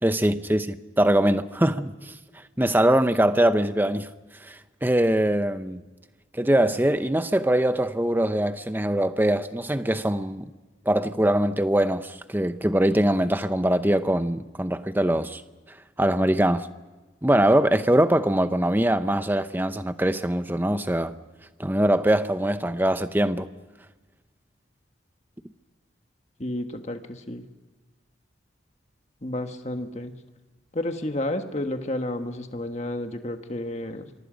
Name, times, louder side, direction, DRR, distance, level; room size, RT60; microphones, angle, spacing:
voice 1, 0.0-2.1 2.6-4.1 4.4-5.8 6.3-10.5 10.9-15.4 16.0-16.7 17.2-21.1 21.6-23.5, right 1 dB, 10° right, 0.7 m, -22 dB
voice 2, 26.4-27.4 29.2-30.1 30.7-34.1, left 1 dB, 35° left, 1.5 m, -31 dB
27.0 x 23.5 x 5.2 m
head